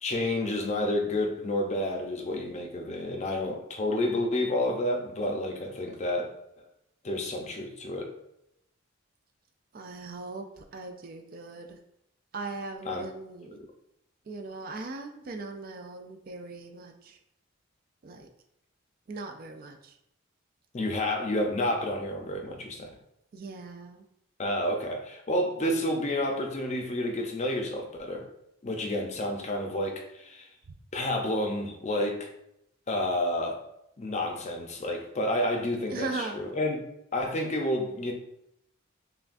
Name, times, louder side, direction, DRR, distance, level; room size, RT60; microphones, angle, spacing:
voice 1, 0.0-6.3 7.0-8.1 12.9-13.0 13.5-13.6 20.7-22.9 24.4-28.2 28.6-30.5 30.9-32.3 32.9-33.6 34.0-36.8 37.1-38.1, left 1 dB, 35° left, 2 dB, 0.5 m, -30 dB
voice 2, 9.7-11.8 12.3-13.6 14.3-17.2 18.0-18.3 19.1-20.0 23.3-24.0 35.9-36.4, right 3 dB, 45° right, 5 dB, 0.3 m, -39 dB
5.7 x 2.3 x 2.5 m, 0.80 s
head